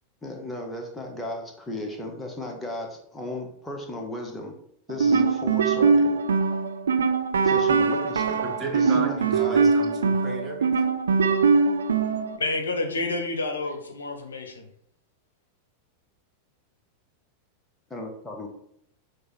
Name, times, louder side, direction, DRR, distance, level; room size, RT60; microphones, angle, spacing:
voice 1, 0.2-4.5 4.9-6.1 7.4-8.4 8.7-9.6 17.9-18.5, left 1 dB, 10° left, 1 dB, 0.8 m, -35 dB
sound 1, 4.9-12.4, right 5 dB, 70° right, 0.3 m, -22 dB
voice 2, 8.4-11.0, right 3 dB, 20° right, -1 dB, 1.1 m, -35 dB
voice 3, 12.4-14.6, left 2 dB, 70° left, 5 dB, 0.6 m, -29 dB
6.3 x 2.1 x 3.0 m, 0.72 s
figure-of-eight pair, 90°, 0 cm